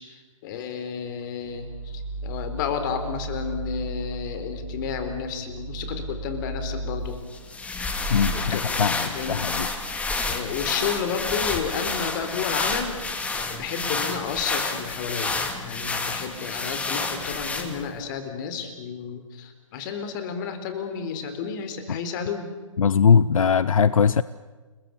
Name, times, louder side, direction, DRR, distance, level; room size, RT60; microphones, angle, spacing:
voice 1, 0.0-7.2 8.3-9.8 10.2-22.5, left 6 dB, 40° left, 8 dB, 4.0 m, -32 dB
sound 1, 1.4-7.0, right 1 dB, 60° left, 6.5 m, -35 dB
sound 2, 7.3-18.0, left 3 dB, 10° left, 2.2 m, -29 dB
voice 2, 8.1-9.7 22.8-24.2, left 6 dB, 80° left, 17 dB, 0.7 m, -20 dB
29.5 x 22.0 x 7.2 m, 1.3 s
hypercardioid pair, 140°, 17 cm